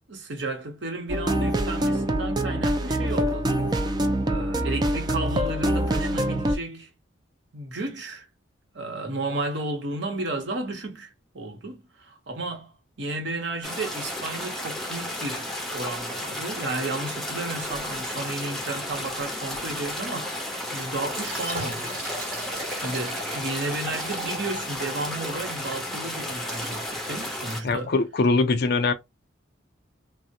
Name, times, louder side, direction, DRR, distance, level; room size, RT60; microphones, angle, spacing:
voice 1, 0.1-3.5 4.2-6.9 7.5-8.3 8.7-20.3 20.7-22.0 22.7-27.9, right 2 dB, 65° right, 0.9 m, -33 dB
sound 1, 1.1-6.6, right 1 dB, 20° right, 0.4 m, -25 dB
sound 2, 13.6-27.6, left 1 dB, ahead, 0.7 m, -33 dB
Liquid, 21.0-27.8, right 2 dB, 50° right, 1.2 m, -39 dB
voice 2, 27.6-28.9, left 3 dB, 55° left, 0.5 m, -22 dB
3.4 x 2.0 x 2.7 m
head